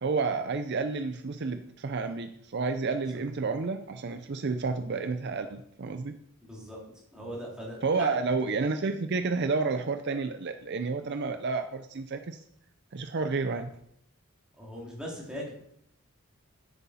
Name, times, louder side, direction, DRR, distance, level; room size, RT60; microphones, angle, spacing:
voice 1, 0.0-6.1 7.8-12.4 12.9-13.7, right 4 dB, 50° right, 8 dB, 0.5 m, -30 dB
voice 2, 6.4-8.2 14.6-15.5, equal, 5° right, -4 dB, 2.7 m, -39 dB
9.8 x 8.2 x 4.2 m, 0.71 s
head